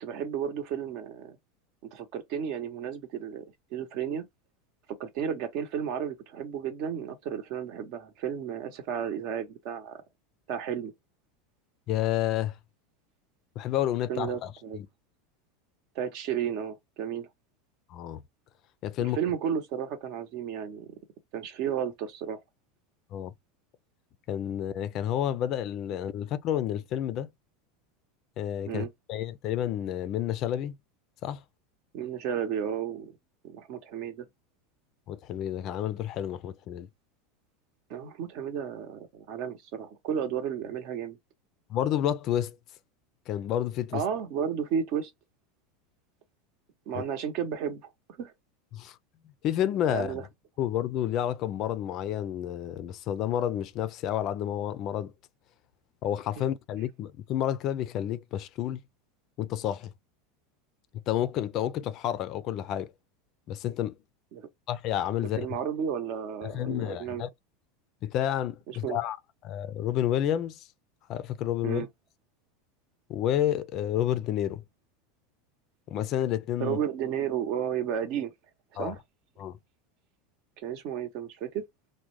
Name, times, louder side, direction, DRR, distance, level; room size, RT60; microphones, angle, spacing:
voice 1, 0.0-1.4 1.9-3.5 3.7-4.2 4.9-10.0 10.5-10.9 14.1-14.8 15.9-17.3 19.0-20.9 21.3-22.4 28.7-28.9 31.9-33.2 33.4-34.3 37.9-41.2 43.9-45.1 46.9-47.8 48.2-48.3 49.9-50.2 56.4-56.5 64.3-64.5 65.2-67.2 68.7-69.0 71.6-71.9 76.6-78.3 78.8-79.0 80.6-81.6, right 8 dB, 55° right, 0.8 m, -33 dB
voice 2, 11.9-12.5 13.6-14.9 17.9-18.2 18.8-19.2 23.1-23.3 24.3-27.3 28.4-30.8 31.2-31.4 35.1-36.9 41.7-42.6 43.3-44.0 46.9-47.0 48.7-49.0 49.4-50.2 50.6-55.1 56.0-58.8 59.4-59.9 61.1-62.9 63.5-64.0 64.7-65.5 66.4-67.3 68.0-69.2 69.4-70.7 71.1-71.9 73.1-74.6 75.9-76.8 78.8-79.0 79.4-79.6, left 11 dB, 45° left, 0.4 m, -30 dB
3.6 x 2.1 x 3.0 m
supercardioid pair, 140°, 0 cm